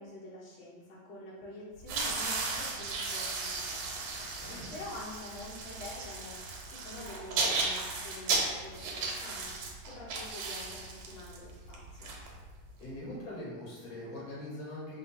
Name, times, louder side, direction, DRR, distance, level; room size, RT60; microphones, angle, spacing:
voice 1, 0.0-4.2 4.7-12.1, left 2 dB, 55° left, -7 dB, 1.5 m, -47 dB
sound 1, 1.8-12.8, right 3 dB, 90° right, 1.5 m, -35 dB
voice 2, 4.4-4.7 12.8-15.0, left 1 dB, 75° left, -6 dB, 1.7 m, -42 dB
3.7 x 2.2 x 4.2 m, 1.3 s
omnidirectional pair, 2.2 m